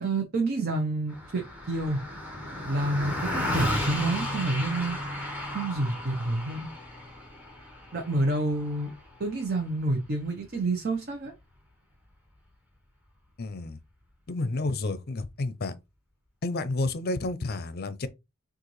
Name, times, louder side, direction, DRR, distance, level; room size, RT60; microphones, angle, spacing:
voice 1, 0.0-2.0 2.7-5.0 5.5-6.7 7.9-8.9 9.2-11.3, right 2 dB, 45° right, 0.8 m, -28 dB
Car passing by, 1.1-10.7, left 1 dB, 5° right, 1.3 m, -34 dB
voice 2, 13.4-13.8 14.3-15.8 16.4-18.1, left 2 dB, 45° left, 0.6 m, -30 dB
6.4 x 2.5 x 3.1 m
head